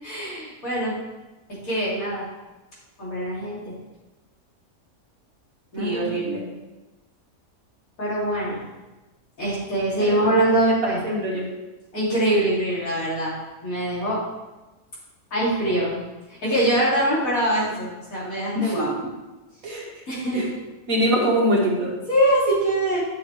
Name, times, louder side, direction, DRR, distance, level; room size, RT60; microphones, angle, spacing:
voice 1, 0.0-0.9 1.6-2.2 3.0-3.6 5.7-6.1 8.0-8.6 9.4-11.0 11.9-13.3 13.6-14.2 15.3-16.0 16.4-18.9 20.1-20.5 22.1-23.0, right 1 dB, 70° left, -7 dB, 3.4 m, -23 dB
voice 2, 5.8-6.4 10.0-10.3 11.0-11.4 18.5-19.1 19.6-19.9 20.3-20.5 20.9-21.9, equal, 70° right, -2 dB, 2.1 m, -24 dB
10.5 x 6.5 x 3.3 m, 1.1 s
omnidirectional pair, 1.5 m